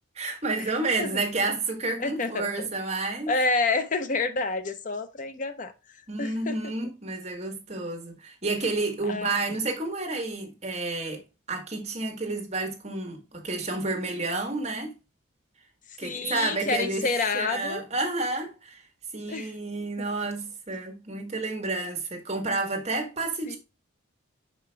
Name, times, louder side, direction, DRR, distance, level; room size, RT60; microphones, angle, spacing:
voice 1, 0.1-3.3 6.1-11.2 11.5-14.9 16.0-17.0 17.3-18.8 19.1-23.6, right 3 dB, 35° right, 1.5 m, -30 dB
voice 2, 2.0-2.7 3.3-5.7 6.2-6.6 9.1-9.4 16.0-17.8 19.3-19.5 23.5-23.6, left 3 dB, 40° left, 0.6 m, -28 dB
5.7 x 5.0 x 3.3 m
head